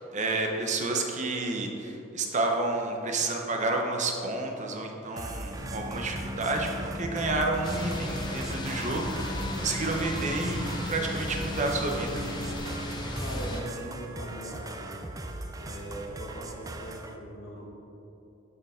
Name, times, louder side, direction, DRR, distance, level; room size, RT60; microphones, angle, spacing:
voice 1, 0.0-12.1 12.6-12.7, right 2 dB, 35° right, 2 dB, 0.8 m, -30 dB
sound 1, 5.2-17.2, right 2 dB, 15° right, 0.4 m, -40 dB
sound 2, 5.6-12.6, equal, 90° right, 1.6 m, -38 dB
sound 3, 7.6-13.6, left 1 dB, 20° left, 0.6 m, -36 dB
voice 2, 13.2-15.1 15.5-17.7, right 1 dB, 80° left, -3 dB, 1.7 m, -40 dB
12.0 x 4.6 x 3.6 m, 3.0 s
head